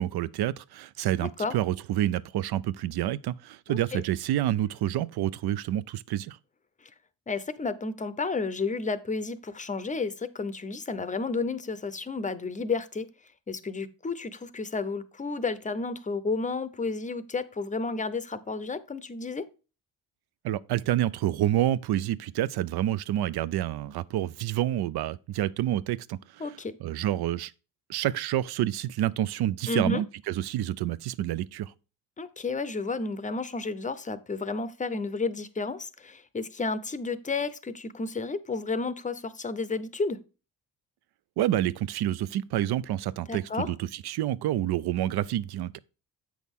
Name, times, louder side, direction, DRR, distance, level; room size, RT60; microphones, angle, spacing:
voice 1, 0.0-6.4 20.4-26.4 26.8-27.5 27.9-31.7 41.4-45.8, right 12 dB, 75° right, 0.6 m, -28 dB
voice 2, 1.2-1.6 3.7-4.0 6.8-6.9 7.3-13.1 13.5-19.5 26.4-26.7 29.7-30.0 32.2-40.2 43.3-43.7, left 3 dB, 20° left, 0.6 m, -32 dB
8.4 x 6.2 x 3.6 m
cardioid pair, 135°, 38 cm